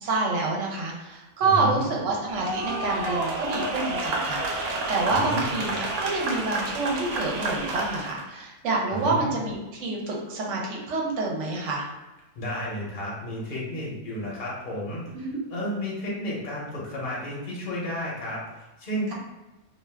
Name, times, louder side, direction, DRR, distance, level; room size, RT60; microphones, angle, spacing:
voice 1, 0.0-11.9 15.1-15.4, right 3 dB, 65° right, -2 dB, 1.0 m, -27 dB
voice 2, 1.4-1.8 5.1-5.5 8.9-9.3 12.3-15.0 15.5-18.4 18.8-19.1, equal, 45° left, -5 dB, 0.8 m, -32 dB
sound 1, 2.3-8.2, right 2 dB, 90° right, 1.1 m, -30 dB
2.4 x 2.3 x 3.3 m, 1.1 s
omnidirectional pair, 1.5 m